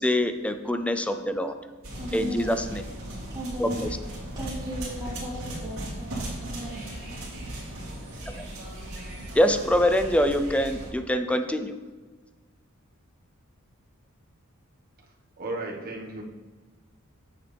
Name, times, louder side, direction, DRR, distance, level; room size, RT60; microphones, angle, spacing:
voice 1, 0.0-1.6 2.1-2.8 3.6-3.9 9.4-11.7, equal, 5° left, 8 dB, 0.4 m, -24 dB
sound 1, 1.8-10.9, right 1 dB, 65° right, 2.9 m, -37 dB
voice 2, 2.0-2.8 3.1-4.0 4.3-7.0, equal, 20° right, -7 dB, 2.8 m, -36 dB
voice 3, 15.4-16.2, right 2 dB, 45° right, -1 dB, 1.4 m, -34 dB
9.2 x 7.3 x 3.4 m, 1.4 s
head